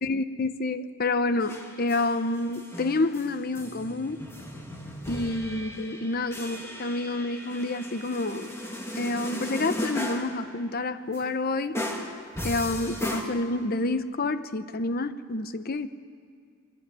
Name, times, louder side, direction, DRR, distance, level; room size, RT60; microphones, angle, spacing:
voice 1, 0.0-4.2 5.1-8.5 9.0-11.8 12.4-15.9, left 2 dB, 45° left, 12 dB, 0.8 m, -28 dB
sound 1, 1.4-2.2 2.5-10.4 11.1-11.2 11.7-13.2, equal, 10° left, 2.0 m, -36 dB
22.5 x 17.5 x 9.5 m, 2.1 s
head